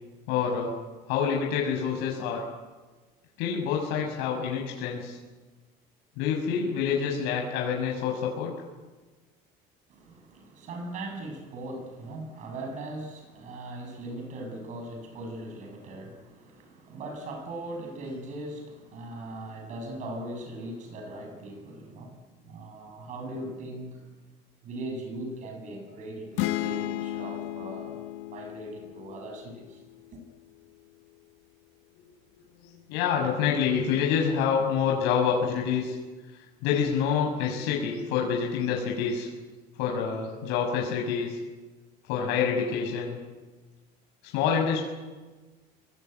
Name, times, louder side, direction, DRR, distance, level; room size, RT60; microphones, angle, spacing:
voice 1, 0.3-0.8 1.1-2.4 3.4-5.2 6.2-8.5 32.9-36.0 36.6-39.3 39.8-41.4 42.1-43.2 44.3-44.8, left 7 dB, 75° left, 6.1 m, -27 dB
voice 2, 9.9-24.2 24.6-29.8 30.1-30.2, right 1 dB, 40° right, 7.3 m, -39 dB
sound 1, 26.4-30.1, left 14 dB, 90° left, 1.6 m, -34 dB
26.5 x 23.5 x 9.3 m
cardioid pair, 170°, 19 cm